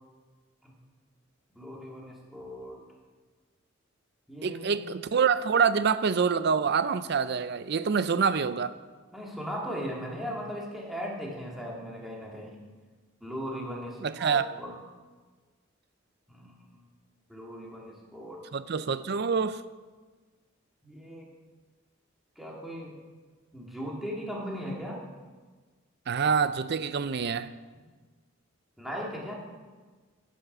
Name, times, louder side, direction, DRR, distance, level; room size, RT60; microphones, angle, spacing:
voice 1, 1.5-2.8 4.3-4.8 9.1-12.6 13.2-14.7 16.3-16.8 17.3-18.4 20.8-21.3 22.4-22.9 23.5-25.0 28.8-29.4, equal, ahead, -3 dB, 2.1 m, -38 dB
voice 2, 4.4-8.7 14.0-14.5 18.5-19.6 26.1-27.5, right 6 dB, 55° right, 14 dB, 0.5 m, -26 dB
9.8 x 9.2 x 5.5 m, 1.4 s
head